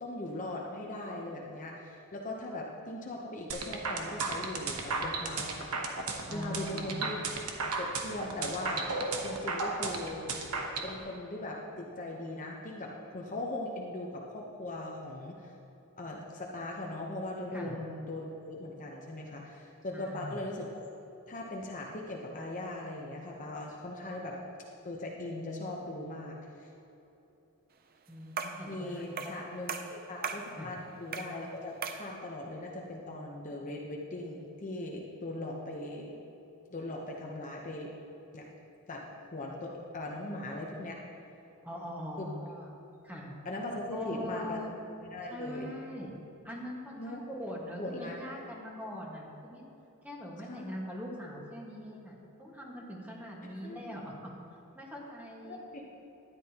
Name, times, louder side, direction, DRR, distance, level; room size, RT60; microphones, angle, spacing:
voice 1, 0.0-5.7 6.3-7.4 7.8-8.9 9.2-10.3 10.8-15.5 16.0-20.8 21.3-24.4 24.8-26.7 28.7-36.1 36.7-37.9 38.3-38.5 38.9-39.1 39.3-41.0 42.2-42.3 43.4-44.6 45.0-45.7 47.0-47.2 47.8-48.1 50.4-50.7 53.6-54.0 55.4-55.9, left 2 dB, 35° left, -1 dB, 0.8 m, -39 dB
sound 1, 3.5-10.9, right 3 dB, 80° right, 1.0 m, -34 dB
voice 2, 6.3-7.0 17.5-17.7 19.9-20.4 28.1-29.3 30.6-30.7 41.6-42.7 43.0-43.3 43.9-44.7 45.3-46.1 46.4-49.6 50.0-54.3 54.7-55.6, equal, 5° right, -3 dB, 1.5 m, -42 dB
sound 2, 28.4-28.7 29.2-29.4 29.7-30.5 31.1-31.4 31.8-32.1, right 6 dB, 40° right, 0.5 m, -37 dB
13.0 x 10.5 x 2.9 m, 3.0 s
head